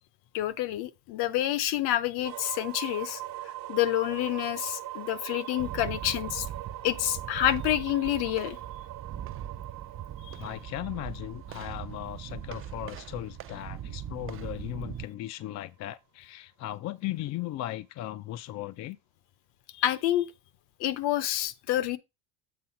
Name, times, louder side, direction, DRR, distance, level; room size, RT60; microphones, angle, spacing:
voice 1, 0.3-3.2 3.7-6.5 6.8-8.6 19.8-20.3 20.8-22.0, left 13 dB, 60° left, 0.9 m, -28 dB
sound 1, 2.2-14.0, right 15 dB, 50° right, 0.9 m, -42 dB
sound 2, 5.6-15.0, right 10 dB, 30° right, 0.5 m, -40 dB
voice 2, 10.4-19.0, left 14 dB, 40° left, 0.4 m, -37 dB
7.8 x 3.8 x 5.7 m
supercardioid pair, 105°, 43 cm